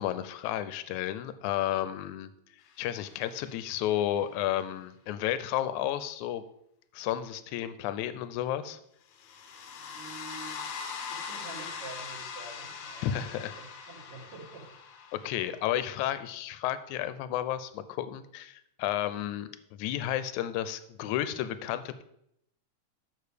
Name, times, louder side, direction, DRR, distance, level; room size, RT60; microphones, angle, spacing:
voice 1, 0.0-2.3 2.8-6.4 6.9-8.8 13.0-13.6 15.1-22.0, left 12 dB, 85° left, 13 dB, 1.9 m, -32 dB
sound 1, 2.8-3.9 9.1-15.9, left 6 dB, 65° left, 1.7 m, -42 dB
voice 2, 9.8-10.7 11.1-14.7, right 3 dB, 70° right, -5 dB, 3.7 m, -47 dB
6.8 x 6.6 x 5.0 m, 0.75 s
omnidirectional pair, 3.4 m